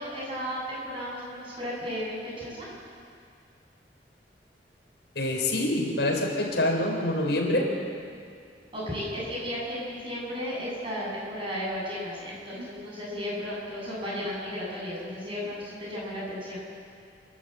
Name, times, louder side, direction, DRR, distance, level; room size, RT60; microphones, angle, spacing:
voice 1, 0.0-2.7 8.7-16.6, equal, 30° right, -5 dB, 7.7 m, -34 dB
voice 2, 5.2-7.8 12.5-12.6, left 1 dB, 80° left, 0 dB, 4.1 m, -26 dB
28.5 x 12.0 x 7.9 m, 2.3 s
head